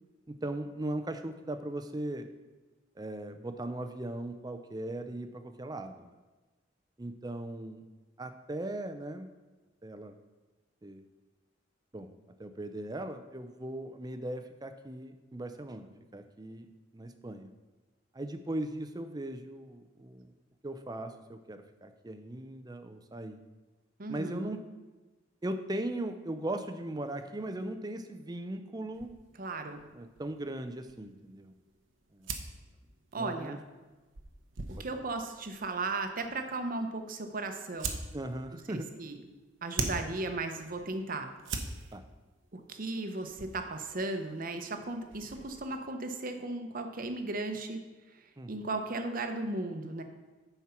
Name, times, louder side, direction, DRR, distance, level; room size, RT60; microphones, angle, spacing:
voice 1, 0.3-2.3 3.0-6.1 7.0-7.8 8.2-9.3 9.8-10.2 10.8-11.0 11.9-12.1 12.4-17.5 18.1-20.3 20.6-23.4 24.1-24.6 25.4-29.1 29.9-31.5 32.1-32.3 33.1-33.6 34.8-35.0 38.1-38.9 41.9-42.0 48.4-48.7, right 1 dB, 20° right, 8 dB, 0.5 m, -38 dB
voice 2, 24.0-24.6 29.4-29.8 33.1-33.6 34.7-38.0 38.7-39.2 39.6-41.3 42.5-47.8 48.5-50.0, right 2 dB, 45° right, 6 dB, 0.9 m, -36 dB
sound 1, 28.9-45.8, right 4 dB, 85° right, 0.9 m, -44 dB
9.5 x 4.5 x 5.8 m, 1.2 s
head